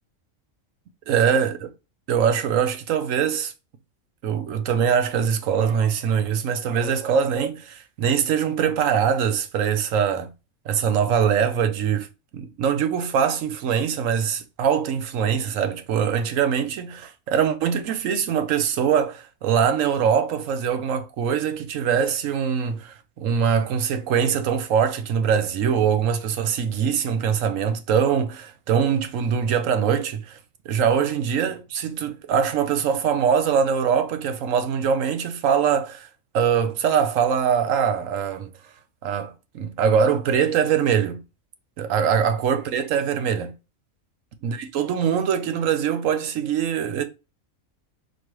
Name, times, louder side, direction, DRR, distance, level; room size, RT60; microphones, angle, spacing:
voice 1, 1.1-1.7 2.1-3.5 4.2-10.3 10.7-12.1 12.3-30.4 30.7-36.1 36.3-38.5 39.0-41.2 41.8-43.5 44.4-47.0, right 7 dB, 70° right, 1.0 m, -23 dB
4.3 x 3.1 x 3.0 m
omnidirectional pair, 1.4 m